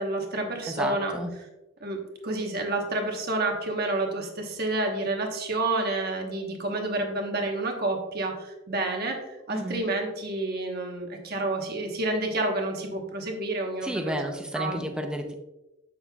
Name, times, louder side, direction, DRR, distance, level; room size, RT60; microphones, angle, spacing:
voice 1, 0.0-1.1 1.8-14.2 14.5-14.8, right 2 dB, 50° right, 2 dB, 1.1 m, -29 dB
voice 2, 0.7-1.3 9.5-9.8 13.8-15.3, equal, 5° right, 4 dB, 0.6 m, -31 dB
7.4 x 6.4 x 2.3 m, 0.98 s
head